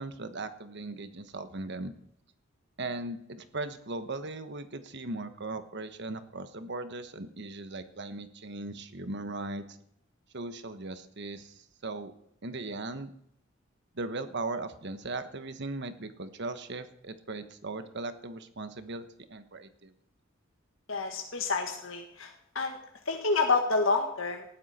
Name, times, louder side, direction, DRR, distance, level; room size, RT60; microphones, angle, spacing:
voice 1, 0.0-1.9 2.8-9.8 10.3-12.1 12.4-13.1 13.9-19.9, right 2 dB, 60° right, 10 dB, 1.3 m, -38 dB
voice 2, 20.9-22.8 23.0-24.4, left 3 dB, 75° left, 2 dB, 1.8 m, -28 dB
19.0 x 13.0 x 4.4 m, 0.72 s
head